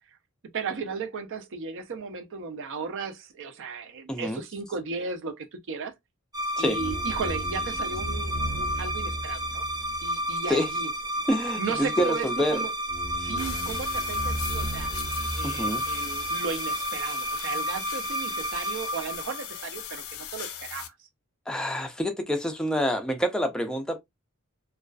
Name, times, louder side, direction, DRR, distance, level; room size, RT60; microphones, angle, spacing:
voice 1, 0.5-5.9 6.6-9.7 10.0-10.9 11.6-12.7 13.1-14.9 15.3-20.9, right 5 dB, 60° right, 0.5 m, -35 dB
voice 2, 4.1-4.4 6.6-6.8 10.5-10.7 11.3-12.6 15.4-15.8 21.5-24.0, equal, 5° left, 0.4 m, -27 dB
sound 1, 6.3-20.0, equal, 20° right, 0.7 m, -31 dB
sound 2, 13.4-20.9, left 10 dB, 70° left, 0.4 m, -39 dB
2.4 x 2.3 x 2.2 m
head